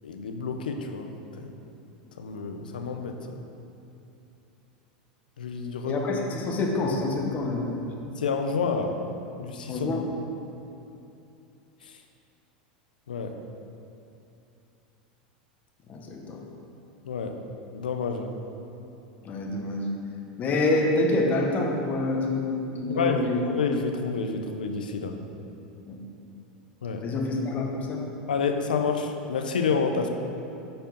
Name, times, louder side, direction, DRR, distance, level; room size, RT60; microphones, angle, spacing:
voice 1, 0.0-1.5 2.2-3.4 5.4-6.0 8.2-9.0 9.4-9.9 11.8-12.0 13.1-13.4 17.1-17.5 17.7-18.3 22.9-25.2 26.8-27.1 28.3-30.1, left 5 dB, 90° left, 5 dB, 0.6 m, -29 dB
voice 2, 5.8-7.9 9.7-10.0 15.9-16.4 19.2-19.9 20.4-22.5 22.8-23.4 25.9-26.0 27.0-28.0, left 2 dB, 35° left, 0 dB, 1.2 m, -27 dB
7.8 x 4.5 x 5.2 m, 2.8 s
hypercardioid pair, 100°, 5 cm